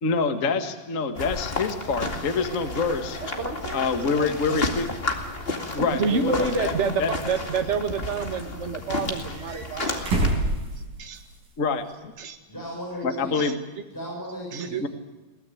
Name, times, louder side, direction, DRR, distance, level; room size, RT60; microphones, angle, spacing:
voice 1, 0.0-3.2 3.7-4.9 5.7-6.7 7.0-7.1 11.6-12.1 13.0-13.6 14.8-14.9, left 4 dB, 45° left, 7 dB, 1.0 m, -26 dB
sound 1, 1.2-10.3, left 2 dB, 20° left, 1.7 m, -32 dB
voice 2, 3.4-3.9 4.2-4.4 5.9-10.0 11.0-11.2 12.2-12.4 13.3-13.5 14.5-14.8, right 5 dB, 35° right, 6 dB, 1.2 m, -28 dB
sound 2, 7.3-8.2 9.1-11.5 11.8-11.9 13.5-13.6, right 2 dB, 65° right, 6.7 m, -29 dB
voice 3, 12.5-13.4 13.9-14.9, equal, 5° left, -4 dB, 7.0 m, -35 dB
22.5 x 18.0 x 8.7 m, 1.2 s
omnidirectional pair, 4.3 m